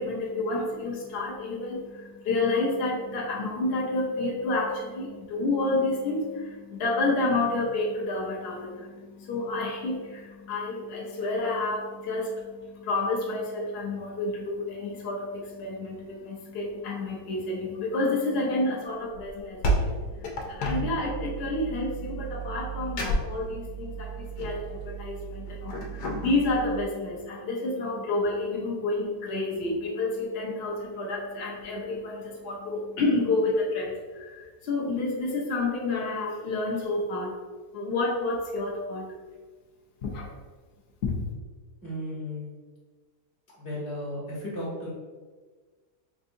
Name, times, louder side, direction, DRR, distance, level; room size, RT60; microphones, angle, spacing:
voice 1, 0.0-20.0 20.5-37.3 37.7-39.1 40.0-40.3 41.0-41.1, left 2 dB, 70° left, -3 dB, 0.6 m, -29 dB
sound 1, 19.1-26.8, right 2 dB, 90° left, 1.2 m, -32 dB
voice 2, 41.8-42.5 43.5-44.9, left 1 dB, 40° left, -5 dB, 1.1 m, -34 dB
4.4 x 2.5 x 2.5 m, 1.4 s
omnidirectional pair, 1.7 m